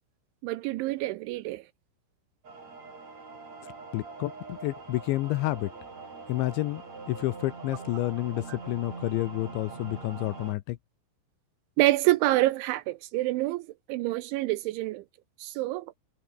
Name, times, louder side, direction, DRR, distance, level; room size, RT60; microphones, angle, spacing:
voice 1, 0.4-1.6 8.5-8.6 11.8-15.0 15.4-15.9, right 18 dB, 85° right, 2.8 m, -27 dB
sound 1, 2.4-10.6, right 4 dB, 35° right, 6.8 m, -43 dB
voice 2, 3.9-5.7 6.3-6.8 7.1-10.8, left 18 dB, 80° left, 2.8 m, -30 dB
omnidirectional pair, 5.9 m